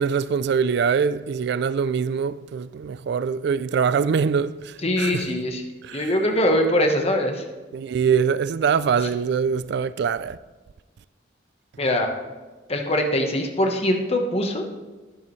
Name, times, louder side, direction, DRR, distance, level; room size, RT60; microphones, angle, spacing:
voice 1, 0.0-5.3 5.8-6.1 7.7-10.4, right 6 dB, 60° right, 0.3 m, -23 dB
voice 2, 4.8-5.6 5.9-7.4 11.8-12.2 12.7-14.6, left 1 dB, 35° left, 1.1 m, -22 dB
12.5 x 10.5 x 3.2 m
head